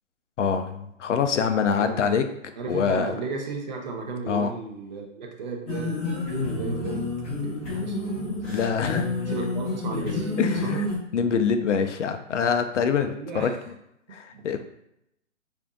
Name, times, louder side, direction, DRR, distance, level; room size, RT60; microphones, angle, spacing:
voice 1, 0.4-2.2 2.7-3.2 4.3-4.5 8.4-9.2 10.4-10.9 11.1-13.7 14.1-14.6, left 6 dB, 65° left, 8 dB, 0.5 m, -25 dB
voice 2, 1.8-2.1 2.6-6.0 6.3-7.0 7.4-8.6 9.3-10.8 13.0-13.5 14.3-14.4, right 4 dB, 35° right, 1 dB, 0.6 m, -35 dB
sound 1, 5.7-11.0, left 2 dB, 20° left, 1.3 m, -29 dB
4.9 x 2.6 x 2.3 m, 0.79 s
hypercardioid pair, 140°, 39 cm